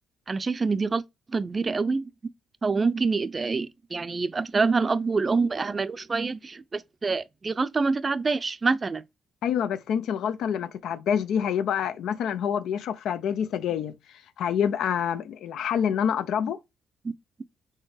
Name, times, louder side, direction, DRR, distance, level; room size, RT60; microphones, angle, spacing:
voice 1, 0.3-1.0 1.3-2.1 2.6-9.0, right 4 dB, 30° right, 0.5 m, -26 dB
voice 2, 9.4-14.0 14.4-16.6, left 8 dB, 75° left, 0.4 m, -27 dB
4.5 x 3.4 x 3.2 m
cardioid pair, 90°, 0 cm